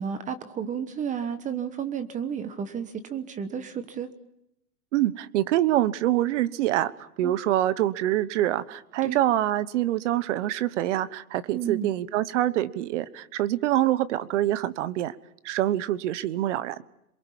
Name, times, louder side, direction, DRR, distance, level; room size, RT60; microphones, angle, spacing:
voice 1, 0.0-4.1 7.2-7.3 9.0-9.2 11.5-11.9, right 7 dB, 15° right, 11 dB, 1.1 m, -32 dB
voice 2, 4.9-15.1 15.4-16.8, right 13 dB, 55° right, 17 dB, 1.2 m, -25 dB
27.5 x 23.0 x 7.3 m, 0.80 s
hypercardioid pair, 145°, 44 cm